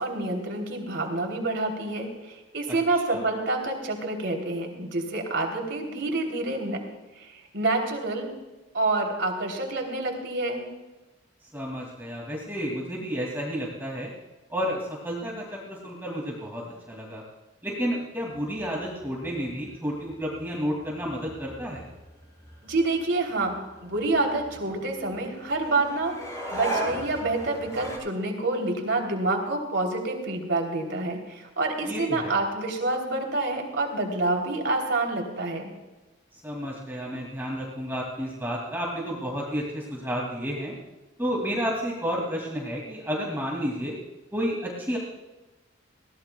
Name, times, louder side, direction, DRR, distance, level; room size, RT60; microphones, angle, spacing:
voice 1, 0.0-6.8 7.2-8.3 8.7-10.6 22.6-23.5 23.8-26.1 26.5-35.7, right 2 dB, 60° right, 2 dB, 3.2 m, -27 dB
voice 2, 11.5-14.1 14.5-17.2 17.6-21.8 31.8-32.4 36.3-40.7 41.2-43.9 44.3-45.0, equal, 10° right, -3 dB, 2.5 m, -31 dB
sound 1, 18.3-28.0, right 1 dB, 15° left, 5.9 m, -38 dB
22.0 x 17.5 x 2.3 m, 1.1 s
head